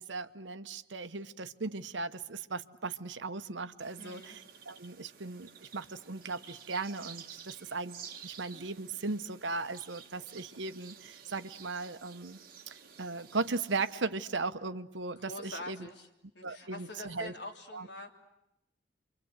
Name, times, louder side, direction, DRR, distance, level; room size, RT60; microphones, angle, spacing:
voice 1, 0.0-12.4 13.0-15.9 16.4-17.3 17.7-17.9, right 3 dB, 75° right, 11 dB, 1.0 m, -37 dB
sound 1, 3.8-14.0, right 7 dB, 50° right, 1.8 m, -52 dB
voice 2, 4.0-4.4 15.2-16.1 16.3-18.1, left 2 dB, 70° left, 2 dB, 3.3 m, -45 dB
29.5 x 24.5 x 8.1 m, 0.86 s
head